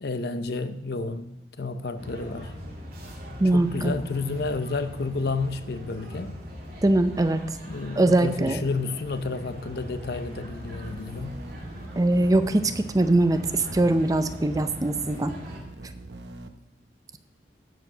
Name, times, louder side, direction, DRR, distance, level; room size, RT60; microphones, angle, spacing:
voice 1, 0.0-2.5 3.5-6.3 7.7-11.4, left 3 dB, 65° left, 10 dB, 0.7 m, -31 dB
sound 1, 2.0-15.6, equal, 55° right, 2.2 m, -41 dB
voice 2, 3.4-4.0 6.8-7.4 8.0-8.6 12.0-15.3, right 2 dB, 20° right, 9 dB, 0.5 m, -22 dB
sound 2, 10.6-16.5, right 2 dB, 75° right, 0.8 m, -43 dB
12.0 x 4.9 x 6.1 m, 0.90 s
head